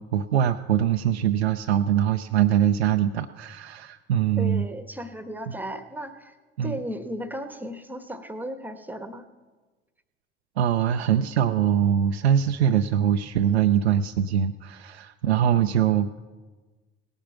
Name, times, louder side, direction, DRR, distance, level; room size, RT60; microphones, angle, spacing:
voice 1, 0.0-4.7 6.6-6.8 10.6-16.2, right 9 dB, 80° right, 7 dB, 0.5 m, -23 dB
voice 2, 4.4-6.3 6.6-9.2, equal, 5° right, 9 dB, 1.2 m, -35 dB
18.0 x 8.9 x 5.9 m, 1.3 s
figure-of-eight pair, 55°, 32 cm